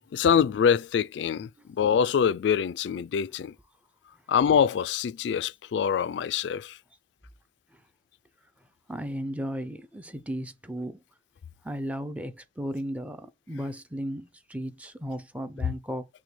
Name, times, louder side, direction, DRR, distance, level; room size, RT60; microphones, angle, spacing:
voice 1, 0.1-3.5 4.3-6.7, left 7 dB, 90° left, 0.3 m, -24 dB
voice 2, 8.9-11.0 11.6-16.1, equal, 10° right, 0.5 m, -35 dB
5.9 x 2.2 x 3.2 m
head